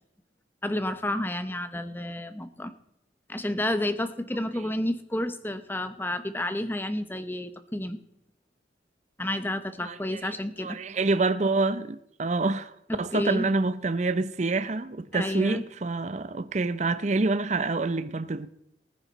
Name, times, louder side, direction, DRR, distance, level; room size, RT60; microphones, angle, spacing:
voice 1, 0.6-2.7 3.3-8.0 9.2-10.8 12.9-13.5 15.1-15.6, left 1 dB, 10° left, 0.8 m, -30 dB
voice 2, 9.8-10.3 10.6-18.5, right 3 dB, 40° right, 0.6 m, -27 dB
19.5 x 9.8 x 4.1 m
head